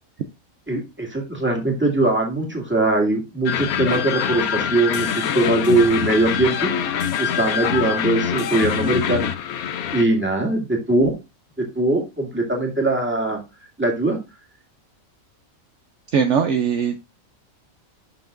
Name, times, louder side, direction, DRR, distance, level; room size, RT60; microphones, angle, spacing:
voice 1, 0.7-6.7 7.2-9.3 9.9-11.1 11.6-13.4 13.8-14.2, right 2 dB, 10° right, 1 dB, 2.0 m, -21 dB
sound 1, 3.5-10.0, left 8 dB, 85° left, 1.2 m, -24 dB
voice 2, 16.1-17.0, right 6 dB, 65° right, 7 dB, 0.9 m, -20 dB
11.5 x 5.8 x 2.5 m, 0.25 s
omnidirectional pair, 1.5 m